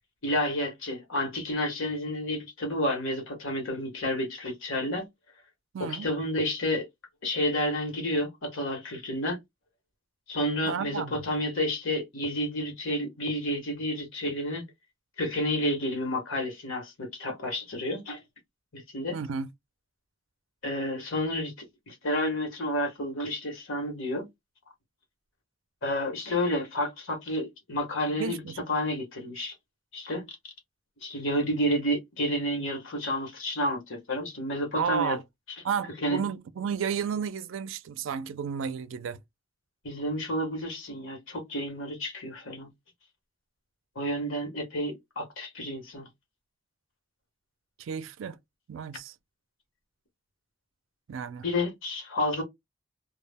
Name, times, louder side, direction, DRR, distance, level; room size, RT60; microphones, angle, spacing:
voice 1, 0.2-5.1 5.8-6.9 7.2-9.4 10.3-14.6 15.2-18.2 18.7-19.2 20.6-24.3 25.8-28.4 28.7-29.5 29.9-30.5 31.0-35.2 36.0-36.2 39.8-42.7 43.9-46.1 51.4-52.4, left 1 dB, 80° left, 1.1 m, -30 dB
voice 2, 5.7-6.1 10.7-11.2 19.1-19.5 28.1-28.6 34.8-35.2 35.6-39.2 47.8-48.4 48.7-49.1 51.1-51.5, right 7 dB, 75° right, 0.4 m, -32 dB
2.3 x 2.0 x 3.3 m
head